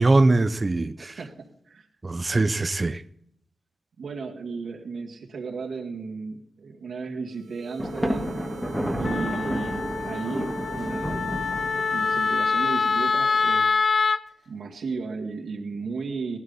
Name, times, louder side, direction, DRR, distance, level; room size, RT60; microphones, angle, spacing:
voice 1, 0.0-1.2 2.0-3.0, right 2 dB, 25° right, 0.5 m, -22 dB
voice 2, 1.0-1.3 1.7-1.9 4.0-8.4 9.0-11.5 11.9-13.8 14.5-16.4, right 4 dB, 70° right, 2.0 m, -34 dB
sound 1, 7.3-13.5, right 7 dB, 85° right, 1.3 m, -42 dB
Thunder, 7.8-12.4, equal, ahead, 1.6 m, -30 dB
Wind instrument woodwind instrument, 9.0-14.2, left 5 dB, 45° left, 0.5 m, -25 dB
18.0 x 12.5 x 4.1 m
wide cardioid pair, 145°, 0 cm